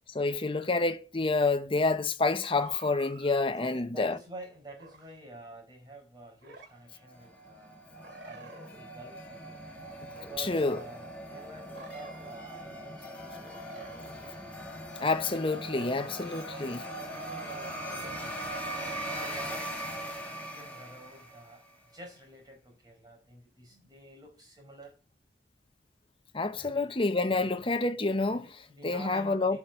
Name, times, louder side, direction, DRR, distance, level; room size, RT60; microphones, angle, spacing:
voice 1, 0.1-4.1 10.4-10.8 15.0-16.8 26.3-29.6, left 3 dB, 30° left, 0.9 m, -28 dB
sound 1, 2.5-3.4 4.8-5.1 6.4-6.7 8.0-8.8 10.1-10.8 11.7-12.4 13.4-14.4 15.5-16.4 17.5-18.1, right 2 dB, 85° right, 2.6 m, -50 dB
voice 2, 3.6-9.7 10.1-14.1 15.8-18.5 19.0-25.0 26.5-26.9 27.3-27.6 28.3-29.6, right 2 dB, 25° right, 4.5 m, -49 dB
sound 2, 7.0-21.7, right 1 dB, 10° left, 2.3 m, -41 dB
11.5 x 6.0 x 3.7 m
head